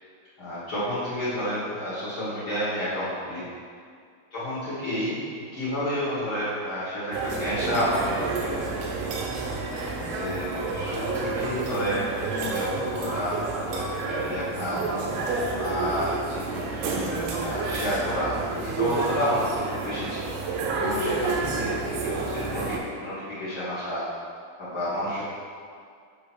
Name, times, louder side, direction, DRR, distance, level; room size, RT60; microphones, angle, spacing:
voice 1, 0.4-3.5 4.3-8.7 9.4-9.5 10.0-15.2 15.6-24.1 24.6-25.2, equal, 60° left, -12 dB, 1.3 m, -30 dB
sound 1, 7.1-22.8, right 3 dB, 80° right, 2.6 m, -30 dB
8.3 x 2.9 x 6.0 m, 2.2 s
omnidirectional pair, 4.6 m